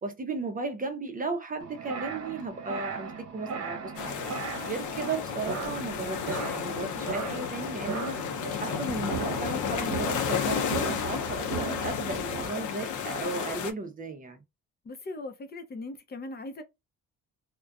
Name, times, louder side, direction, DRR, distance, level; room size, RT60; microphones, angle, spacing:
voice 1, 0.0-4.2 4.7-8.2 8.6-14.4, right 3 dB, 30° right, 0.6 m, -35 dB
sound 1, 1.6-12.5, right 5 dB, 55° right, 0.9 m, -37 dB
sound 2, 4.0-13.7, left 7 dB, 80° left, 0.6 m, -32 dB
voice 2, 14.8-16.6, left 2 dB, 35° left, 0.6 m, -39 dB
2.4 x 2.2 x 2.3 m
cardioid pair, 90°, 30 cm